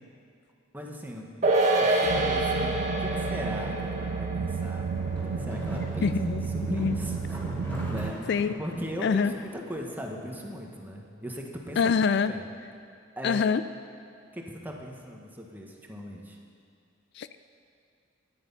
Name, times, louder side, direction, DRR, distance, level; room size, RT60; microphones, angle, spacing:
voice 1, 0.7-1.3 1.8-5.0 5.2-6.1 6.5-7.4 7.9-11.9 12.3-12.4 13.2-13.4 14.3-16.4, equal, 10° right, 0 dB, 1.3 m, -39 dB
sound 1, 1.4-8.1 8.4-8.5, right 2 dB, 40° right, 1.4 m, -29 dB
sound 2, 2.0-8.1, right 6 dB, 75° right, 0.3 m, -32 dB
sound 3, 4.9-10.4, equal, 10° left, 4.1 m, -39 dB
voice 2, 6.0-7.0 8.3-8.5 9.0-9.3 11.8-12.3 13.2-13.6 17.1-17.3, left 5 dB, 60° left, 13 dB, 0.4 m, -25 dB
13.5 x 10.5 x 5.6 m, 2.3 s
head